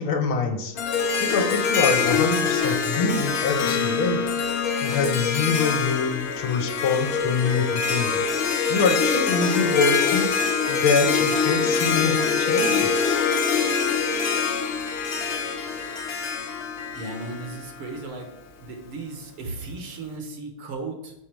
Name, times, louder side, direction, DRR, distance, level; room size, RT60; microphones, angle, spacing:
voice 1, 0.0-4.2 4.8-8.2 8.7-10.3 10.7-12.9, left 4 dB, 75° left, 5 dB, 1.7 m, -25 dB
Harp, 0.8-18.0, left 6 dB, 60° left, 1.1 m, -24 dB
voice 2, 16.9-18.3 18.6-21.1, right 3 dB, 80° right, 3 dB, 2.1 m, -35 dB
7.0 x 5.0 x 4.5 m, 0.83 s
omnidirectional pair, 2.4 m